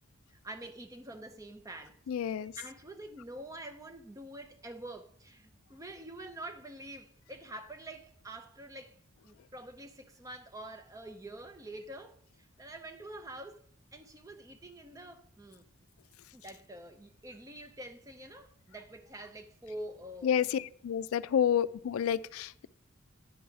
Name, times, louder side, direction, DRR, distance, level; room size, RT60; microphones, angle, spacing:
voice 1, 0.3-8.9 9.2-13.6 13.9-15.7 16.3-20.4 21.3-21.4, right 1 dB, 15° right, 0.6 m, -46 dB
voice 2, 2.1-2.5 20.2-22.7, left 8 dB, 80° left, 0.3 m, -30 dB
9.3 x 5.5 x 4.7 m
head